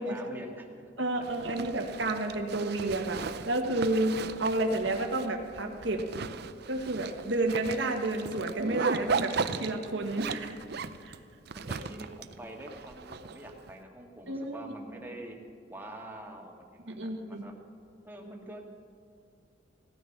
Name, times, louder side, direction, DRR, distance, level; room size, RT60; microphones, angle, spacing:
voice 1, 0.0-0.8 1.2-1.5 11.5-15.4 15.7-17.6 18.0-18.6, right 1 dB, 10° right, 1 dB, 1.8 m, -45 dB
voice 2, 1.0-6.0 6.7-10.6 11.0-11.1 14.3-14.6 16.9-17.5, right 2 dB, 80° right, 3 dB, 1.5 m, -31 dB
Zipper (clothing), 1.2-13.7, right 5 dB, 60° right, 0.6 m, -37 dB
17.0 x 13.0 x 5.9 m, 2.4 s
head